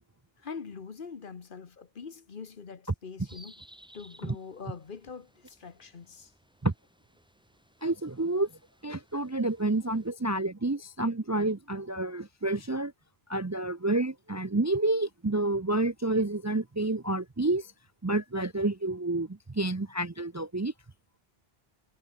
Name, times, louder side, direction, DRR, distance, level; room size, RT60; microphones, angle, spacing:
voice 1, 0.4-3.5 3.9-6.3, left 5 dB, 55° left, 1.3 m, -43 dB
sound 1, 3.3-10.1, equal, 5° right, 3.0 m, -59 dB
voice 2, 7.8-8.5 8.8-12.9 13.3-17.7 18.0-20.7, right 2 dB, 20° right, 0.6 m, -29 dB
omnidirectional pair, 1.0 m